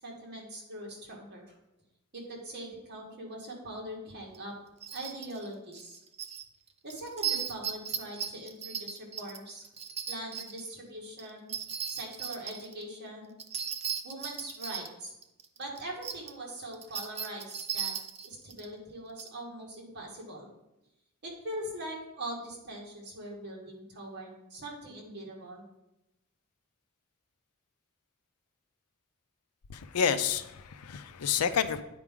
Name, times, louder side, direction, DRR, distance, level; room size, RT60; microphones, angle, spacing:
voice 1, 0.0-1.5 2.1-4.5 4.9-6.0 6.8-9.6 10.1-11.5 11.9-13.3 14.0-15.1 15.6-17.9 18.2-20.5 21.2-25.6, right 1 dB, 50° right, -1 dB, 1.9 m, -42 dB
sound 1, 4.3-4.4 4.8-5.5 5.7-6.4 6.9-10.6 11.2-12.8 13.4-16.3 16.6-18.6 19.2-19.3, right 8 dB, 30° right, 0.5 m, -36 dB
voice 2, 29.7-31.8, left 7 dB, 85° left, 12 dB, 0.5 m, -29 dB
9.6 x 4.8 x 3.7 m, 0.92 s
head